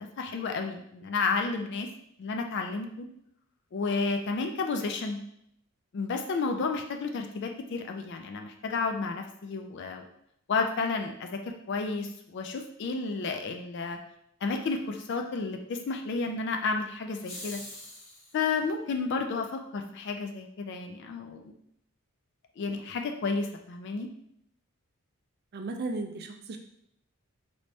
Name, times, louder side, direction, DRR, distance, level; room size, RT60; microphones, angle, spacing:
voice 1, 0.0-1.9 2.2-3.1 3.7-5.2 5.9-10.0 10.5-14.0 14.4-17.6 18.3-21.5 22.6-24.1, left 4 dB, 55° left, 5 dB, 0.3 m, -31 dB
sound 1, 17.1-18.5, left 2 dB, 70° left, 1.2 m, -43 dB
voice 2, 25.5-26.6, right 3 dB, 45° right, 4 dB, 0.4 m, -35 dB
3.3 x 3.0 x 2.7 m, 0.74 s
head